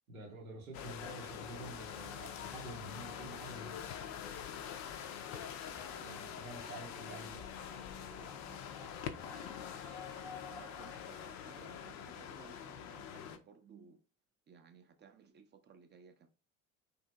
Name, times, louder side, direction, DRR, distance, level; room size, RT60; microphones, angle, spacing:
voice 1, 0.1-3.8 6.0-7.4, right 2 dB, 90° right, 0.9 m, -49 dB
sound 1, 0.7-13.4, left 8 dB, 45° left, 0.4 m, -45 dB
sound 2, 5.2-11.3, left 2 dB, 5° left, 0.8 m, -56 dB
voice 2, 7.1-8.6 10.4-14.0 14.5-16.3, right 6 dB, 25° right, 0.5 m, -59 dB
2.8 x 2.6 x 2.2 m
hypercardioid pair, 70°, 41 cm